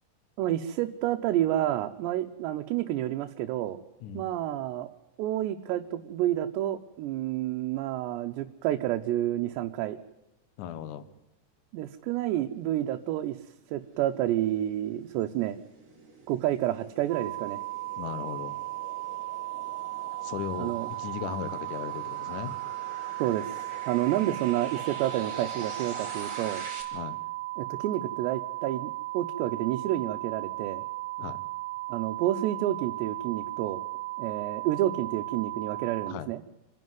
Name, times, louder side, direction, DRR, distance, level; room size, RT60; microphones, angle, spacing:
voice 1, 0.4-3.8 4.1-4.9 5.2-10.0 11.7-13.4 13.7-15.6 16.3-17.6 20.5-20.9 23.2-23.5 23.9-26.6 27.6-30.8 31.9-33.8 34.2-36.4, right 13 dB, 85° right, 4 dB, 3.0 m, -29 dB
voice 2, 10.6-11.0 18.0-18.6 20.2-20.7 21.0-22.5 26.9-27.2 31.2-31.4 36.1-36.3, left 9 dB, 65° left, 14 dB, 2.1 m, -37 dB
sound 1, 13.6-26.8, right 2 dB, 35° right, 5.7 m, -46 dB
sound 2, 17.1-36.1, right 19 dB, 70° right, 2.5 m, -36 dB
26.5 x 11.0 x 9.4 m, 1.0 s
omnidirectional pair, 4.9 m